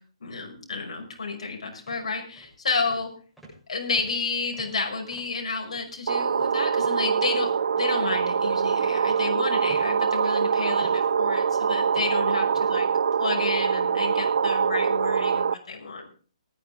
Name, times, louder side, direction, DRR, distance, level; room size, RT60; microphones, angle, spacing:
voice 1, 0.2-3.1 3.7-7.5 7.8-12.8 13.2-16.0, left 4 dB, 75° left, 2 dB, 5.6 m, -31 dB
sound 1, 1.9-2.1 2.4-2.6 2.8-3.1 3.4-5.4 5.7-6.0 6.3-11.6 11.9-12.2 12.5-12.7 13.2-13.3, right 1 dB, ahead, 7.4 m, -51 dB
sound 2, 6.1-15.5, right 6 dB, 65° right, 0.6 m, -24 dB
19.0 x 11.0 x 3.5 m, 0.41 s
hypercardioid pair, 165°, 3 cm